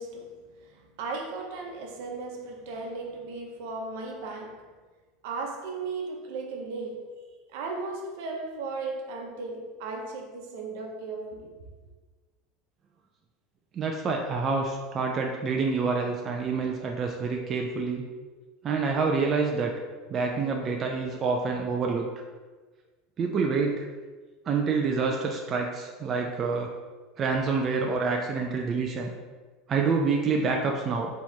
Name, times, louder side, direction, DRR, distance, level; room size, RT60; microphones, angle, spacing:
voice 1, 0.0-4.7 5.2-7.1 7.5-11.5, right 3 dB, 70° right, 0.8 m, -36 dB
voice 2, 13.7-18.0 18.6-19.7 20.1-22.2 23.2-23.9 24.5-26.7 27.2-29.1 29.7-31.1, right 4 dB, 25° right, 0.4 m, -27 dB
3.5 x 3.0 x 4.3 m
supercardioid pair, 155°, 0 cm